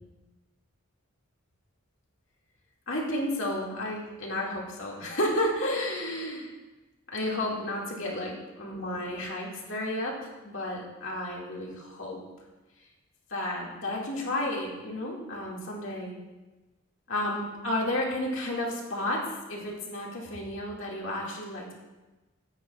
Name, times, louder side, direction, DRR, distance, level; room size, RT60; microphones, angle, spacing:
voice 1, 2.9-6.5 7.1-12.2 13.3-16.1 17.1-21.7, left 1 dB, 65° left, -3 dB, 2.1 m, -32 dB
13.0 x 9.1 x 2.4 m, 1.1 s
head